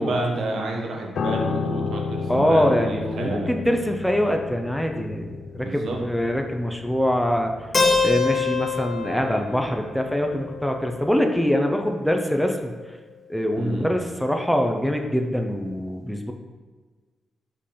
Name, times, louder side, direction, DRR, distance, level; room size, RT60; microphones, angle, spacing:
voice 1, 0.0-3.5 5.6-6.0 13.6-13.9, right 2 dB, 60° right, 1 dB, 1.0 m, -29 dB
Piano, 1.2-10.5 10.8-11.1, left 5 dB, 60° left, 0.4 m, -33 dB
voice 2, 2.3-7.5 8.0-12.7 13.3-16.3, equal, ahead, 3 dB, 0.5 m, -24 dB
Keyboard (musical), 7.7-11.6, left 4 dB, 25° left, 0.9 m, -26 dB
5.3 x 5.2 x 4.2 m, 1.4 s
wide cardioid pair, 155°, 0 cm